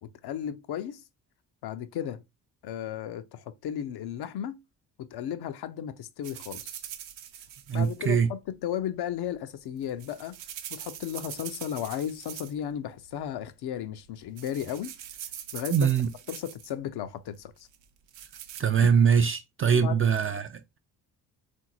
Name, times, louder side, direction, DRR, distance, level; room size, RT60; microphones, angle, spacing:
voice 1, 0.0-1.0 1.6-2.2 2.6-4.6 5.0-6.8 7.7-10.4 10.7-14.9 15.5-15.9 16.3-17.7 19.7-20.0, left 10 dB, 50° left, 0.6 m, -35 dB
sound 1, 6.2-8.2 9.7-12.7 13.0-13.4 13.9-14.1 14.4-16.7 17.7-18.6, right 10 dB, 65° right, 0.7 m, -43 dB
voice 2, 7.7-8.3 15.7-16.1 18.6-20.8, right 7 dB, 30° right, 0.4 m, -23 dB
3.7 x 2.6 x 2.8 m
hypercardioid pair, 40°, 49 cm